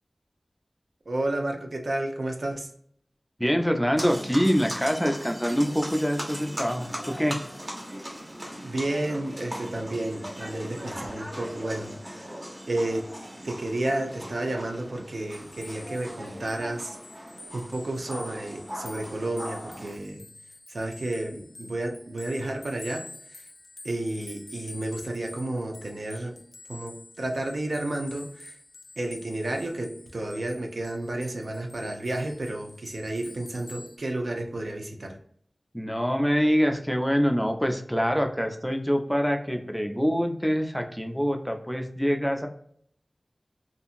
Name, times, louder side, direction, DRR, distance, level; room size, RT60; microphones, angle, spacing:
voice 1, 1.1-2.7 8.6-12.3 12.7-13.1 13.4-17.0 17.5-20.3 20.7-23.4 23.8-26.4 26.7-28.6 29.0-35.2, right 1 dB, 80° right, 3 dB, 0.5 m, -31 dB
voice 2, 3.4-7.4 35.7-42.5, equal, 5° left, 4 dB, 0.4 m, -25 dB
sound 1, 4.0-20.0, equal, 30° right, 1.0 m, -39 dB
sound 2, 15.0-34.0, left 2 dB, 70° left, 0.4 m, -48 dB
2.7 x 2.5 x 2.5 m, 0.63 s
wide cardioid pair, 55°, 0 cm